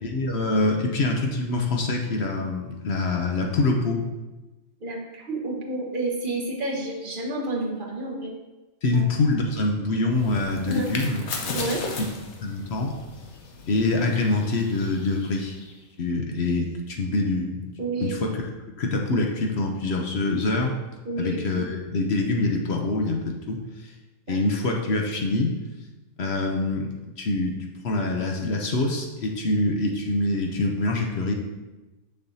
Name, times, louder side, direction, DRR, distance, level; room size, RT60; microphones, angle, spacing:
voice 1, 0.0-4.0 8.8-11.3 12.0-12.1 12.4-12.9 13.7-15.6 16.0-17.7 18.0-18.5 18.8-20.7 21.2-23.9 24.3-25.5 26.2-26.9 27.2-27.6 27.8-31.3, left 2 dB, 55° left, 1 dB, 0.9 m, -25 dB
voice 2, 4.8-8.3 8.9-9.0 10.6-11.0 11.5-11.8 17.8-18.1 21.0-21.4 24.3-24.4, right 2 dB, 40° right, -2 dB, 1.2 m, -30 dB
sound 1, 10.1-15.8, left 3 dB, 80° left, 1.3 m, -36 dB
6.7 x 6.4 x 2.7 m, 1.1 s
omnidirectional pair, 1.5 m